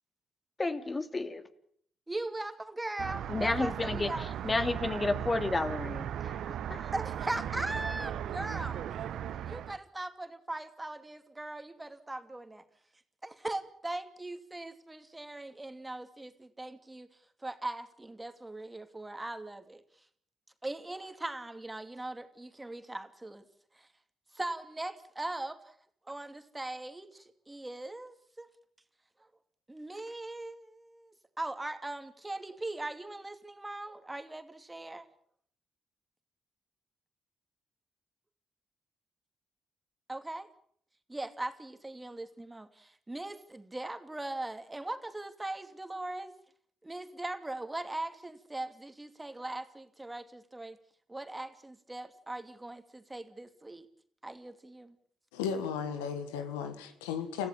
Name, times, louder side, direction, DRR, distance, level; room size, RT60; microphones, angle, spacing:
voice 1, 0.6-1.4 3.3-4.1 4.4-6.9, left 2 dB, 30° left, 10 dB, 2.7 m, -31 dB
voice 2, 2.1-4.4 6.9-8.8 9.5-12.6 13.2-17.1 17.4-20.0 20.6-23.4 23.7-23.9 24.3-25.7 26.1-28.5 29.7-35.1 40.1-40.5 41.1-46.3 46.8-50.8 51.1-53.9 54.2-55.0, right 2 dB, 20° right, 9 dB, 2.6 m, -40 dB
sound 1, 3.0-9.8, right 10 dB, 70° right, 1.0 m, -37 dB
voice 3, 55.3-57.5, left 7 dB, 90° left, 9 dB, 1.7 m, -35 dB
29.0 x 15.0 x 8.8 m, 0.64 s
hypercardioid pair, 45°, 0 cm